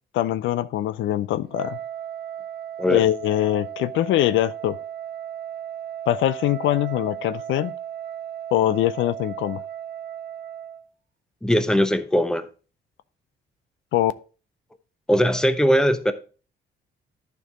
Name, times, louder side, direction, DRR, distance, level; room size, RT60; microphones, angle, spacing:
voice 1, 0.1-1.8 2.9-4.8 6.1-7.7 8.5-9.6 13.9-14.1, left 13 dB, 75° left, 0.4 m, -22 dB
Wind instrument woodwind instrument, 1.5-10.9, right 10 dB, 55° right, 0.8 m, -35 dB
voice 2, 11.4-12.5 15.1-16.1, equal, 5° left, 0.7 m, -20 dB
11.0 x 4.6 x 3.6 m
cardioid pair, 90°, 20 cm